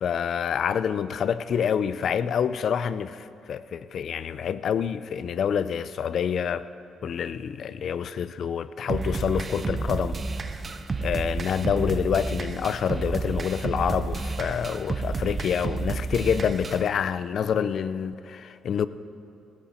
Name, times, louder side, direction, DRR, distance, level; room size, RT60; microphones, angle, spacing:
voice 1, 0.0-6.7 7.0-10.5 11.0-18.9, left 7 dB, 60° left, 0.5 m, -27 dB
sound 1, 8.9-16.9, right 3 dB, 35° right, 0.7 m, -31 dB
17.5 x 13.5 x 4.4 m
cardioid pair, 90°, 0 cm